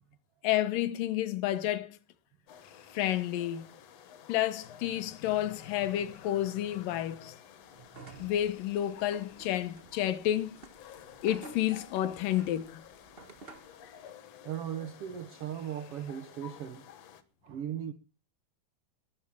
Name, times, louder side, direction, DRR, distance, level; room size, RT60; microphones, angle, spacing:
voice 1, 0.4-2.0 2.9-3.7 4.3-7.4 8.2-10.6 11.2-12.8, left 12 dB, 75° left, 2.5 m, -30 dB
sound 1, 2.5-17.2, left 9 dB, 60° left, 1.9 m, -53 dB
sound 2, 7.8-13.8, right 2 dB, 45° right, 0.7 m, -53 dB
voice 2, 14.4-16.8 17.4-17.9, right 9 dB, 75° right, 1.3 m, -38 dB
20.5 x 7.0 x 7.3 m
omnidirectional pair, 4.0 m